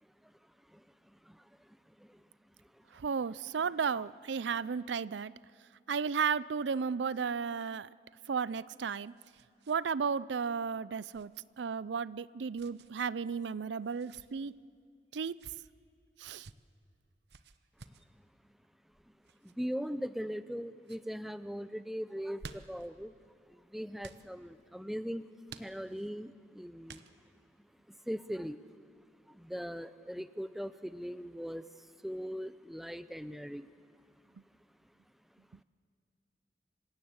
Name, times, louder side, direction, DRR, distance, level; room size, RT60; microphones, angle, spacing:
voice 1, 2.9-5.3 5.9-7.9 8.3-9.1 9.7-14.5 15.1-15.4 16.2-16.5, right 6 dB, 90° right, 20 dB, 0.5 m, -34 dB
sound 1, 8.6-9.8 10.1-10.2 11.1-11.4 12.5-12.9 13.8-14.3 15.2-15.6 16.2-16.6 17.3-18.1 19.2-19.5 20.2-20.6 20.8-21.0 22.1-22.9 24.0-24.3 25.5-26.1 26.9-27.4, right 4 dB, 75° right, 1.0 m, -53 dB
voice 2, 19.6-23.1 23.7-25.3 25.6-27.0 28.1-28.6 29.5-31.6 32.0-33.6, equal, ahead, 13 dB, 0.5 m, -39 dB
27.0 x 17.0 x 8.1 m, 2.3 s
head